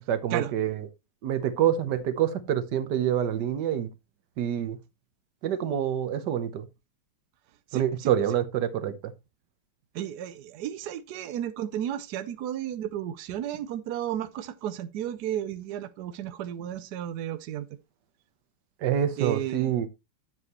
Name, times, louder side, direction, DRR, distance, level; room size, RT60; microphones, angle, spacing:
voice 1, 0.1-0.8 1.2-3.9 4.4-4.8 5.4-6.7 7.7-8.9 18.8-19.9, right 10 dB, 60° right, 1.4 m, -26 dB
voice 2, 7.7-8.1 9.9-17.8 19.2-19.8, right 11 dB, 75° right, 0.9 m, -33 dB
9.7 x 7.4 x 3.0 m
omnidirectional pair, 2.4 m